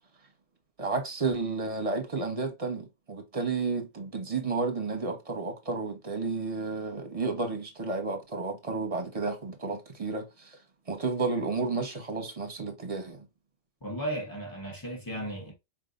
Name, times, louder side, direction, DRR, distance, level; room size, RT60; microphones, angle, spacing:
voice 1, 0.8-10.6 10.9-13.3, right 3 dB, 30° right, 1.2 m, -32 dB
voice 2, 13.8-15.5, right 1 dB, 15° left, 1.6 m, -35 dB
4.8 x 3.4 x 2.6 m
omnidirectional pair, 1.3 m